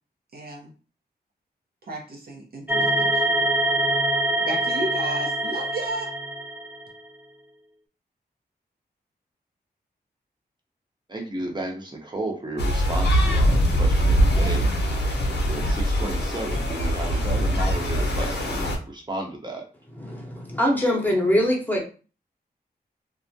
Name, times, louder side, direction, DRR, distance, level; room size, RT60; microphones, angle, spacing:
voice 1, 0.3-0.7 1.9-3.2 4.5-6.1, right 1 dB, 65° right, -1 dB, 0.7 m, -33 dB
sound 1, 2.7-7.0, right 1 dB, 10° right, 0.4 m, -24 dB
voice 2, 11.1-14.7 15.4-19.7, right 2 dB, 25° right, 1 dB, 0.8 m, -33 dB
sound 2, 12.6-18.8, equal, 85° left, 0.6 m, -22 dB
voice 3, 20.0-21.8, equal, 10° left, -2 dB, 0.8 m, -23 dB
2.3 x 2.0 x 2.6 m, 0.35 s
cardioid pair, 65°, 17 cm